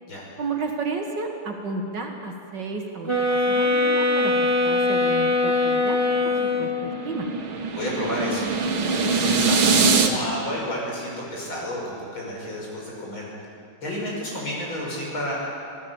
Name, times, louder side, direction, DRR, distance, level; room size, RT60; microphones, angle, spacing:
voice 1, 0.4-6.0 6.2-7.3, right 4 dB, 60° right, 2 dB, 2.4 m, -32 dB
sound 1, 3.1-7.0, left 2 dB, 15° left, 2.2 m, -22 dB
sound 2, 5.8-10.1, right 4 dB, 80° right, 2.3 m, -23 dB
voice 2, 7.7-13.3 13.8-15.3, left 1 dB, 90° left, -4 dB, 6.8 m, -31 dB
25.5 x 15.5 x 7.3 m, 2.6 s
omnidirectional pair, 2.2 m